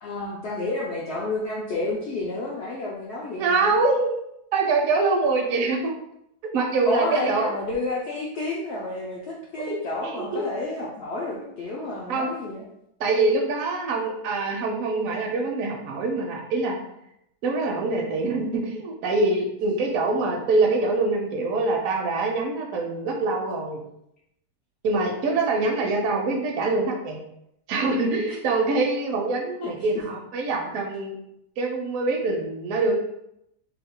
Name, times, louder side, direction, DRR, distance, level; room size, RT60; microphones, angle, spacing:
voice 1, 0.0-3.8 6.8-12.7 28.3-28.4 29.6-30.0, left 2 dB, 80° left, -3 dB, 0.6 m, -30 dB
voice 2, 3.4-4.1 4.5-5.9 6.5-7.5 10.0-10.4 12.1-12.3 13.0-16.8 17.4-23.8 24.8-27.2 27.7-31.2 31.6-32.9, right 3 dB, 70° right, 1 dB, 0.9 m, -24 dB
2.7 x 2.3 x 3.6 m, 0.79 s
omnidirectional pair, 1.7 m